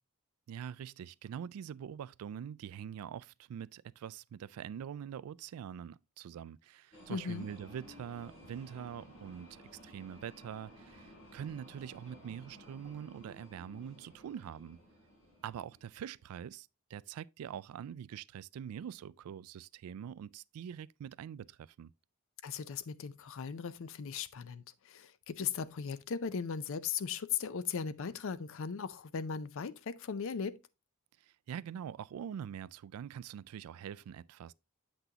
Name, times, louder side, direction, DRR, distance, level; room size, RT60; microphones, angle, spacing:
voice 1, 0.5-14.8 15.4-21.9 31.2-34.5, right 8 dB, 80° right, 0.3 m, -44 dB
sound 1, 6.9-16.3, equal, 85° left, 4.7 m, -56 dB
voice 2, 7.1-7.5 22.4-30.6, left 6 dB, 65° left, 0.5 m, -38 dB
8.0 x 6.0 x 2.8 m
head